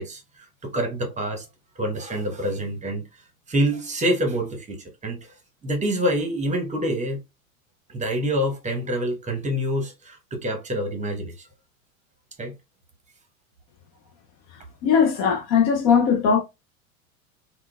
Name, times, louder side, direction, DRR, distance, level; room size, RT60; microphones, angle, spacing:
voice 1, 0.0-1.5 1.8-3.0 3.5-5.3 5.6-7.2 7.9-11.5 12.4-12.5, equal, 15° right, 0.9 m, -26 dB
voice 2, 14.8-16.4, left 6 dB, 40° left, 0.5 m, -19 dB
3.7 x 2.2 x 2.2 m
hypercardioid pair, 85°, 42 cm